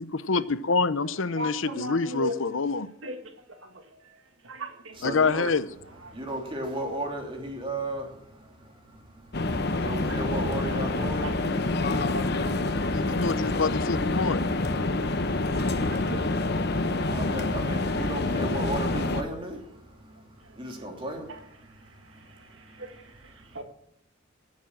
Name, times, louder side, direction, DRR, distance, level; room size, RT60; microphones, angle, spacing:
voice 1, 0.0-2.9 5.0-5.7 12.9-14.4, left 4 dB, 75° left, 0.7 m, -26 dB
voice 2, 1.3-2.4 3.0-3.2 3.5-3.8 4.4-5.0 6.1-6.2 10.1-10.2 11.0-11.3 12.1-12.2 13.2-13.3 15.6-16.3 21.3-21.4 22.3-23.6, equal, 80° right, 2.0 m, -37 dB
voice 3, 4.9-5.5 6.1-13.2 14.9-23.6, right 1 dB, 25° right, 3.0 m, -37 dB
sound 1, 9.3-19.2, left 2 dB, 55° left, 1.1 m, -27 dB
16.5 x 7.4 x 7.4 m
head